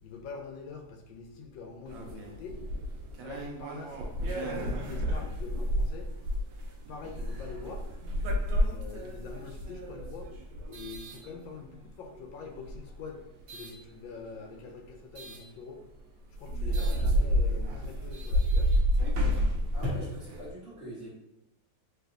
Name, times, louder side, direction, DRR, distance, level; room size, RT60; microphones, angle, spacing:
voice 1, 0.0-2.6 3.2-6.1 6.9-7.9 8.7-10.3 10.7-15.8 16.3-18.7, left 4 dB, 80° left, 3 dB, 1.3 m, -44 dB
sound 1, 1.9-11.9 12.5-13.8 15.1-15.4 16.0-16.1 16.3-20.5, equal, 80° right, 1.3 m, -30 dB
voice 2, 19.7-21.1, left 1 dB, 35° right, -9 dB, 1.3 m, -37 dB
3.4 x 3.2 x 2.4 m, 0.88 s
omnidirectional pair, 2.0 m